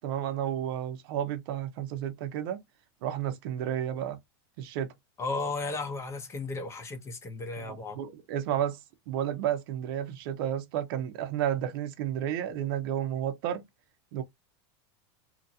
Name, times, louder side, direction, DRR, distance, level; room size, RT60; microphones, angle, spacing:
voice 1, 0.0-2.6 3.0-4.2 4.6-4.9 7.6-8.8 9.1-13.6 14.1-14.2, right 10 dB, 60° right, 0.7 m, -32 dB
voice 2, 5.2-8.0, left 3 dB, 20° left, 0.7 m, -34 dB
2.9 x 2.6 x 2.6 m
supercardioid pair, 150°, 14 cm